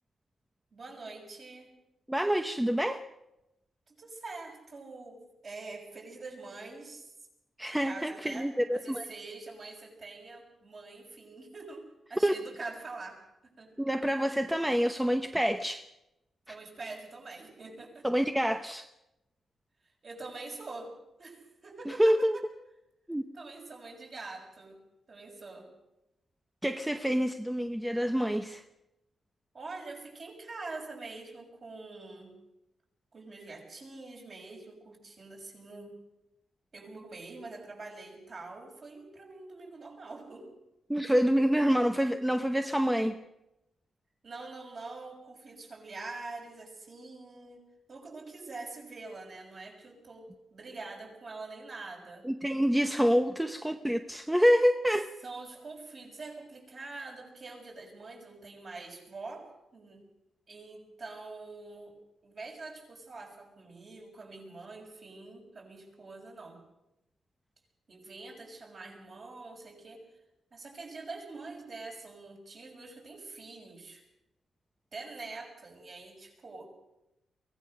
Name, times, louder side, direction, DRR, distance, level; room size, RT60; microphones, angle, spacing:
voice 1, 0.7-1.7 3.9-7.0 7.8-8.5 8.7-13.2 13.6-13.7 16.5-18.1 20.0-20.9 21.2-22.4 23.3-24.8 25.1-25.7 29.5-32.3 33.1-35.9 36.7-40.5 41.5-41.6 44.2-52.3 55.2-59.4 59.7-60.0 60.5-61.9 62.2-66.6 67.9-70.0 70.5-74.0 74.9-76.7, right 3 dB, 40° right, 0 dB, 6.5 m, -45 dB
voice 2, 2.1-3.0 7.6-9.0 12.2-12.3 13.8-15.9 18.0-18.9 21.9-22.4 23.1-23.2 26.6-28.6 40.9-43.2 52.2-55.1, equal, 5° right, 7 dB, 0.8 m, -27 dB
23.5 x 17.5 x 6.5 m, 0.89 s
wide cardioid pair, 145°, 0 cm